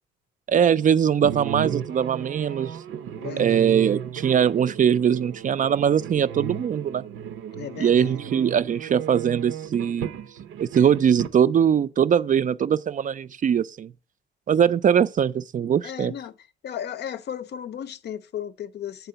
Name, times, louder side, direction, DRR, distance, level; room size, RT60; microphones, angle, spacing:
voice 1, 0.5-2.8 3.4-7.0 7.8-10.1 10.6-13.9 14.5-16.1, right 8 dB, 40° right, 0.4 m, -21 dB
sound 1, 1.2-11.3, right 9 dB, 75° right, 0.8 m, -34 dB
voice 2, 3.2-3.7 7.5-8.2 15.8-19.1, left 9 dB, 60° left, 0.5 m, -35 dB
8.1 x 3.6 x 6.7 m
cardioid pair, 90°, 20 cm